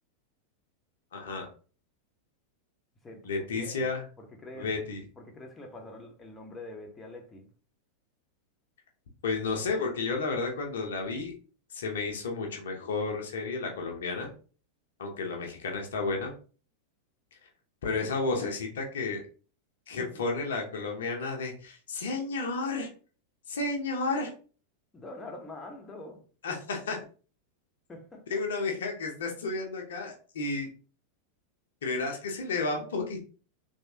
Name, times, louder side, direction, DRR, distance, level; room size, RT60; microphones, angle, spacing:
voice 1, 1.1-1.5 3.2-4.0 4.5-5.0 9.2-11.3 11.7-14.3 15.0-16.3 17.8-19.2 19.9-22.9 23.5-24.3 26.4-27.0 28.3-30.7 31.8-33.2, left 3 dB, 60° left, 0.8 m, -32 dB
voice 2, 3.0-4.8 5.2-7.5 20.0-20.2 24.9-26.2 27.9-28.4, left 2 dB, 15° left, 0.9 m, -45 dB
3.4 x 3.0 x 2.8 m
figure-of-eight pair, 90°, 0 cm